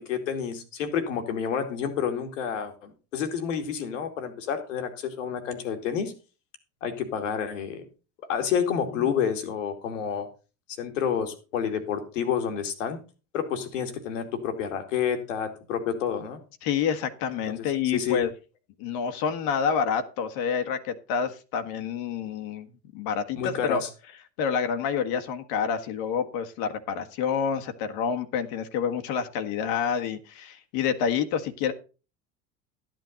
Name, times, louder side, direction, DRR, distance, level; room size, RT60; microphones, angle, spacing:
voice 1, 0.0-6.1 6.8-7.8 8.3-10.3 10.8-13.0 13.3-16.4 17.5-18.2 23.3-23.9, left 7 dB, 80° left, 7 dB, 2.3 m, -29 dB
voice 2, 16.6-18.3 18.8-22.7 22.9-23.8 24.4-31.7, left 7 dB, 65° left, 7 dB, 1.7 m, -28 dB
12.5 x 9.1 x 4.0 m, 0.33 s
hypercardioid pair, 80°, 37 cm